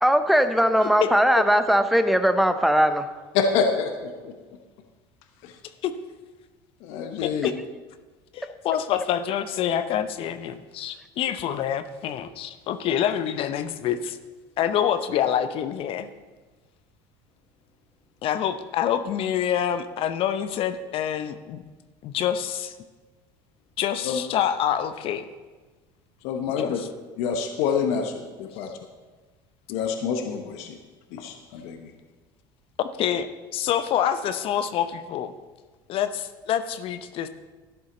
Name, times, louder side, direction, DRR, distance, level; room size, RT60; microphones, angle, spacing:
voice 1, 0.0-3.1, equal, ahead, 9 dB, 0.9 m, -19 dB
voice 2, 3.3-4.3 5.4-5.5 6.8-7.5 24.0-24.2 26.2-26.8 27.2-28.7 29.7-30.8 31.1-31.9, left 6 dB, 70° left, 5 dB, 1.1 m, -27 dB
voice 3, 7.2-7.5 8.3-14.2 14.6-16.1 18.2-21.6 22.0-22.7 23.8-25.2 26.6-26.9 32.8-35.3 35.9-37.3, left 9 dB, 55° left, 11 dB, 0.7 m, -26 dB
12.5 x 10.5 x 3.9 m, 1.3 s
hypercardioid pair, 85°, 11 cm